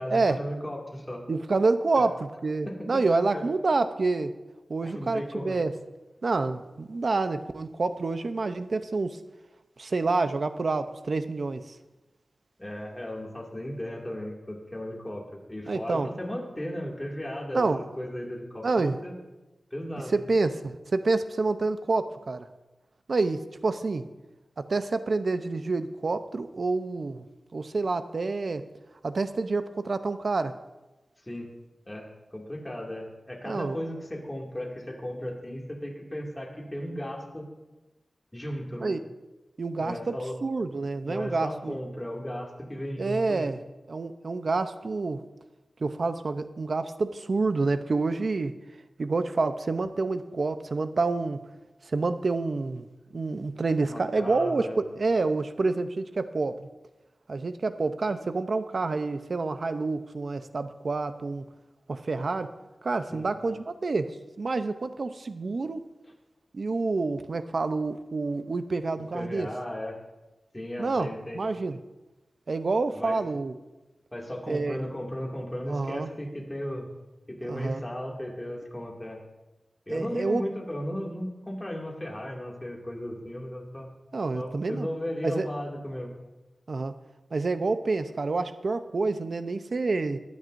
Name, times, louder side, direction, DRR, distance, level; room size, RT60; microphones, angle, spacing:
voice 1, 0.0-1.3 2.0-2.1 2.7-3.0 3.3-3.5 4.8-5.6 12.6-17.7 18.0-19.1 19.7-20.1 31.3-31.5 31.9-37.5 38.3-38.9 39.8-40.4 41.0-43.5 53.8-54.8 63.1-63.3 69.0-70.0 70.5-71.4 72.9-73.2 74.1-76.9 77.3-79.2 79.9-83.9 84.3-86.1, equal, 15° left, -1 dB, 2.3 m, -35 dB
voice 2, 1.3-2.1 2.4-4.3 4.7-5.7 6.2-9.2 9.8-11.7 15.7-16.1 17.5-17.8 18.6-19.0 20.1-22.5 23.1-24.0 24.6-27.2 27.5-28.6 29.0-30.5 33.4-33.8 38.8-39.0 39.6-41.8 43.0-43.6 43.9-45.2 45.8-48.5 49.0-51.4 51.9-52.9 53.1-54.7 55.0-56.7 57.3-61.5 61.9-62.5 62.8-65.8 66.5-69.5 70.8-71.8 72.5-73.6 74.5-74.8 75.7-76.1 77.5-77.8 79.9-80.4 84.1-84.9 85.2-85.5 86.7-86.9 87.3-90.2, right 3 dB, 60° right, 10 dB, 0.7 m, -28 dB
21.0 x 9.4 x 2.6 m, 1.1 s
wide cardioid pair, 105°, 0 cm